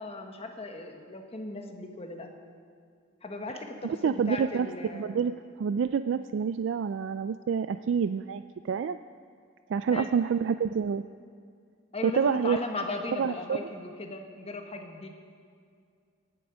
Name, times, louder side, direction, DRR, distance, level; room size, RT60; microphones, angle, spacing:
voice 1, 0.0-2.3 3.2-5.3 9.9-10.1 11.9-15.1, left 2 dB, 35° left, 4 dB, 1.3 m, -37 dB
voice 2, 3.8-5.3 5.6-9.0 9.7-11.0 12.0-12.6 13.2-13.6, right 6 dB, 70° right, 11 dB, 0.3 m, -28 dB
18.0 x 8.5 x 6.2 m, 2.2 s
head